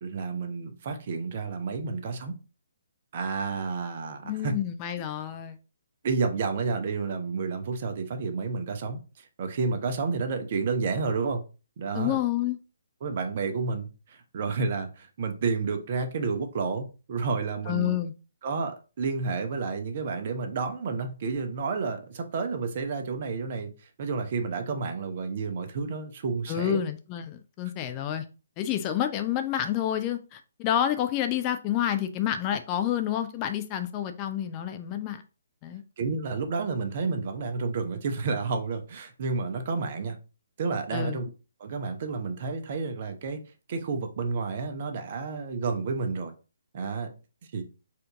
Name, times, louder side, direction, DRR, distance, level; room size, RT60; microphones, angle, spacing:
voice 1, 0.0-2.3 3.1-4.5 6.0-9.0 9.4-11.4 11.8-12.2 13.0-18.0 18.4-23.7 24.0-26.8 36.0-40.2 40.6-41.3 41.6-43.4 43.7-46.3 46.7-47.1 47.5-47.6, right 4 dB, 40° right, 7 dB, 0.7 m, -30 dB
voice 2, 4.2-5.6 11.9-12.6 17.7-18.1 26.5-28.2 28.6-35.2 35.6-35.8 40.9-41.2, left 11 dB, 25° left, 8 dB, 0.4 m, -29 dB
4.3 x 2.6 x 3.5 m, 0.33 s
figure-of-eight pair, 135°, 0 cm